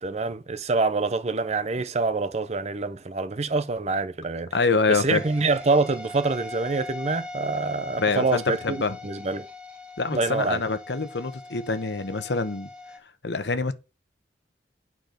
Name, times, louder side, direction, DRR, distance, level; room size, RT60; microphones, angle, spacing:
voice 1, 0.0-4.5 4.9-9.5 10.1-10.6, right 3 dB, 35° right, 0.6 m, -26 dB
voice 2, 4.5-5.2 8.0-9.0 10.0-12.7 13.2-13.7, left 4 dB, 70° left, 1.0 m, -25 dB
sound 1, 4.9-13.0, left 3 dB, 5° right, 1.4 m, -41 dB
9.3 x 5.8 x 5.1 m
head